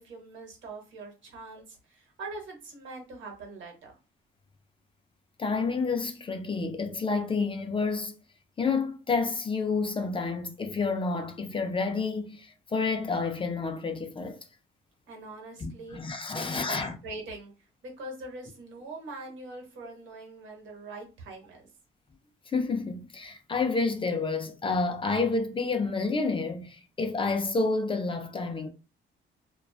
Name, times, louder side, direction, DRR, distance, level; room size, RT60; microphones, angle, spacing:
voice 1, 0.0-3.9 15.1-16.0 16.3-21.7, right 2 dB, 75° right, 0.9 m, -43 dB
voice 2, 5.4-8.1 8.6-14.4 15.6-16.9 22.5-28.7, left 4 dB, 25° left, 0.4 m, -29 dB
2.3 x 2.2 x 2.3 m
cardioid pair, 90°, 20 cm